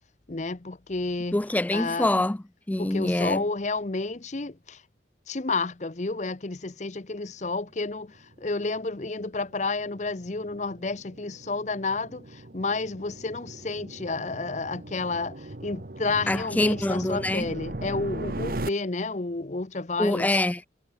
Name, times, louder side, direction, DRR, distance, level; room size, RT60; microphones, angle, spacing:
voice 1, 0.3-1.4 1.7-2.1 2.8-4.8 5.3-20.3, left 3 dB, 40° left, 0.8 m, -31 dB
voice 2, 1.3-3.4 16.3-17.5 20.0-20.7, left 1 dB, 10° left, 0.3 m, -25 dB
sound 1, 7.6-18.7, right 2 dB, 50° right, 1.1 m, -39 dB
head